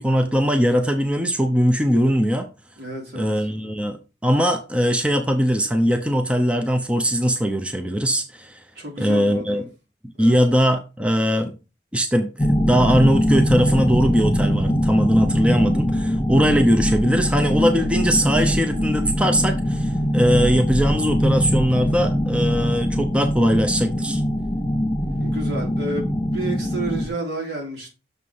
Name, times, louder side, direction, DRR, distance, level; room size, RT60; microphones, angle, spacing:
voice 1, 0.0-2.5 3.2-8.6 9.0-9.6 10.2-11.5 11.9-24.2, equal, 5° right, 0.7 m, -20 dB
voice 2, 2.8-3.5 8.8-9.6 10.2-10.4 25.2-27.9, right 2 dB, 75° right, 3.8 m, -31 dB
sound 1, 12.4-27.1, equal, 15° left, 2.5 m, -22 dB
6.7 x 4.7 x 5.5 m
head